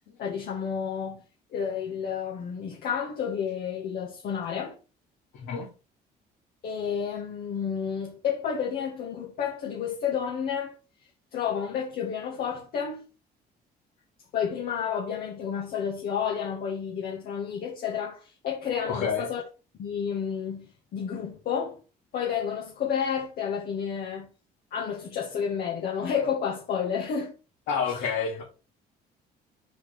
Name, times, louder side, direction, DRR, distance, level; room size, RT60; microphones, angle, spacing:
voice 1, 0.2-1.2 1.5-4.7 6.6-10.7 11.3-13.0 14.3-19.4 19.8-20.7 20.9-21.8 22.1-24.3 24.7-27.3, left 7 dB, 65° left, 1.7 m, -30 dB
voice 2, 5.3-5.7 18.8-19.3 27.7-28.4, left 6 dB, 85° left, 2.8 m, -28 dB
5.9 x 4.9 x 4.8 m
cardioid pair, 110°, 17 cm